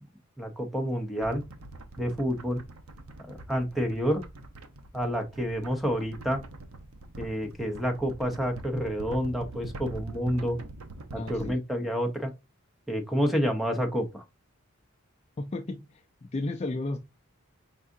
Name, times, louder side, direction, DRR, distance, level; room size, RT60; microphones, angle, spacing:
voice 1, 0.4-1.4 2.0-2.6 3.3-4.2 4.9-6.4 7.2-10.6 11.1-12.3 12.9-14.2, equal, ahead, 0.7 m, -29 dB
sound 1, 1.2-11.5, right 2 dB, 75° right, 0.7 m, -44 dB
voice 2, 11.2-11.6 15.4-17.0, left 2 dB, 30° left, 0.4 m, -34 dB
4.7 x 3.6 x 2.6 m
head